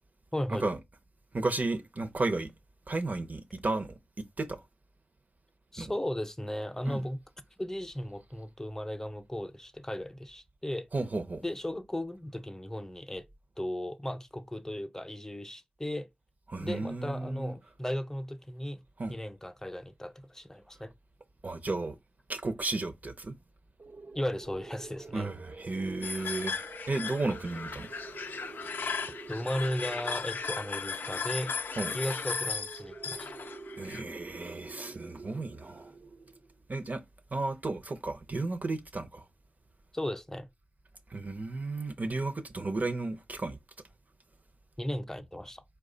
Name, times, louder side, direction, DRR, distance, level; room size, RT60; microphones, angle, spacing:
voice 1, 0.3-0.6 5.7-7.2 7.6-10.9 11.4-13.2 13.6-16.1 16.6-18.8 19.1-20.9 24.1-25.3 29.3-31.5 31.9-33.3 39.9-40.5 44.8-45.6, left 1 dB, 15° left, 0.6 m, -36 dB
voice 2, 1.3-2.5 2.9-4.6 5.8-5.9 6.9-7.0 10.9-11.4 16.5-17.5 19.0-19.2 21.4-22.0 22.3-23.3 25.1-27.9 31.8-32.0 33.8-35.9 36.7-37.0 37.3-39.3 41.1-43.6, right 2 dB, 55° right, 0.7 m, -33 dB
sound 1, 23.8-36.6, right 3 dB, 85° right, 0.9 m, -48 dB
sound 2, 26.0-34.0, left 5 dB, 85° left, 0.3 m, -36 dB
4.6 x 2.3 x 3.8 m
cardioid pair, 40°, 3 cm